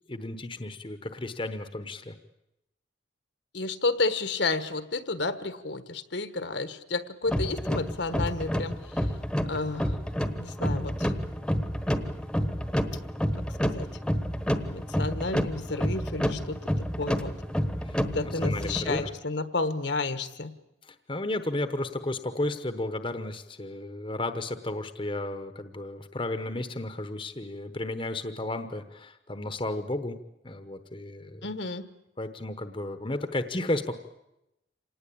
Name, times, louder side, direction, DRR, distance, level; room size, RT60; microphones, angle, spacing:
voice 1, 0.1-2.2 17.8-19.1 20.8-30.2 30.4-31.5 32.2-33.9, left 2 dB, 25° left, 9 dB, 1.0 m, -33 dB
voice 2, 3.5-9.1 9.5-10.0 10.4-11.1 13.7-13.9 14.7-16.6 17.0-17.3 18.0-20.5 31.4-31.9, left 3 dB, 65° left, 11 dB, 1.4 m, -31 dB
sound 1, 7.3-19.1, equal, 5° left, 1.2 m, -29 dB
26.5 x 19.0 x 8.6 m, 0.88 s
head